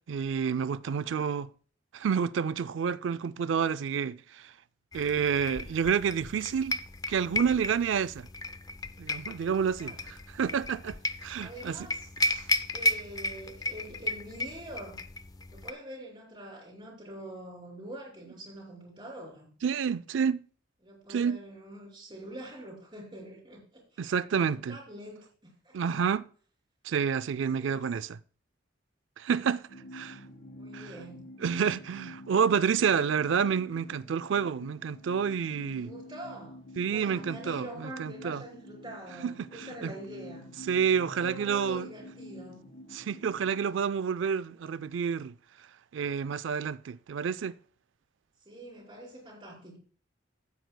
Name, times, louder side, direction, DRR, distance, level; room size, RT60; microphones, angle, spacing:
voice 1, 0.1-1.5 1.9-4.5 4.9-6.8 7.1-8.3 9.0-9.9 10.3-11.8 12.3-12.5 19.6-20.4 21.1-21.4 24.0-24.8 25.7-26.3 26.8-28.1 29.2-29.6 29.9-30.2 30.7-30.8 31.4-35.9 36.8-38.4 39.2-39.5 39.8-39.9 40.7-41.9 42.9-45.3 45.9-47.5, right 7 dB, 75° right, 0.4 m, -29 dB
voice 2, 0.8-1.4 9.7-10.0 11.4-12.1 12.7-15.0 15.5-19.5 20.8-25.8 27.3-28.0 30.0-31.2 35.8-36.6 36.9-40.5 41.1-42.7 48.4-49.8, right 1 dB, 25° right, 3.1 m, -45 dB
sound 1, 4.9-15.7, left 2 dB, 20° left, 0.4 m, -34 dB
sound 2, 29.7-43.8, left 1 dB, 55° left, 1.1 m, -48 dB
15.5 x 8.0 x 2.2 m
head